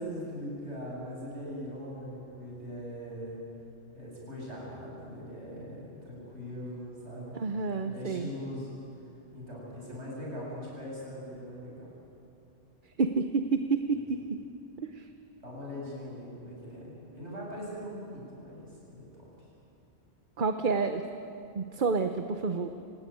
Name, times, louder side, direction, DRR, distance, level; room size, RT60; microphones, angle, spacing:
voice 1, 0.0-3.4 3.9-7.4 7.8-8.7 9.3-11.9 15.4-19.5, equal, 75° right, -4 dB, 8.5 m, -41 dB
voice 2, 7.3-8.3 13.0-14.4 14.8-15.1 20.4-21.0 21.5-22.7, right 4 dB, 50° right, 7 dB, 1.0 m, -29 dB
27.5 x 16.5 x 9.4 m, 2.8 s
omnidirectional pair, 1.2 m